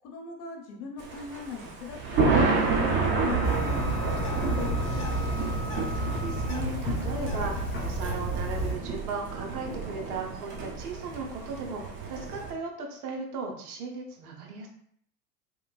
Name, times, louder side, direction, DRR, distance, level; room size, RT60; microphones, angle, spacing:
voice 1, 0.0-5.0, left 6 dB, 65° left, 1 dB, 0.9 m, -39 dB
Thunder, 1.0-12.5, right 4 dB, 25° right, 0.5 m, -30 dB
Wind instrument woodwind instrument, 2.6-6.8, left 1 dB, 45° left, 0.4 m, -42 dB
Bird, 3.4-8.7, equal, 25° left, 0.9 m, -31 dB
voice 2, 5.7-14.7, right 4 dB, 65° right, 1 dB, 0.8 m, -37 dB
3.0 x 2.2 x 2.3 m, 0.66 s
figure-of-eight pair, 85°, 49 cm